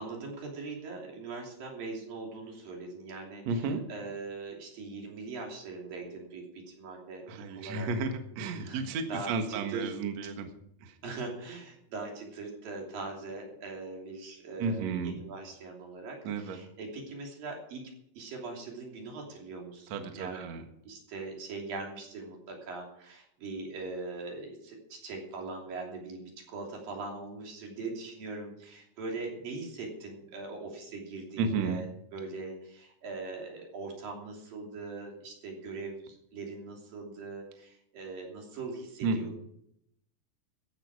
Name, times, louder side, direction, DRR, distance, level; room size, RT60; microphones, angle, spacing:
voice 1, 0.0-7.3 7.5-7.9 8.6-9.9 10.2-10.3 11.0-17.8 18.2-20.4 20.8-39.3, right 3 dB, 50° right, 0 dB, 4.2 m, -41 dB
voice 2, 3.5-3.8 7.3-10.5 10.8-10.9 14.6-15.1 16.2-16.6 19.9-20.6 31.4-31.8 39.0-39.2, right 4 dB, 70° right, 6 dB, 1.6 m, -32 dB
15.0 x 12.0 x 4.8 m, 0.74 s
omnidirectional pair, 5.7 m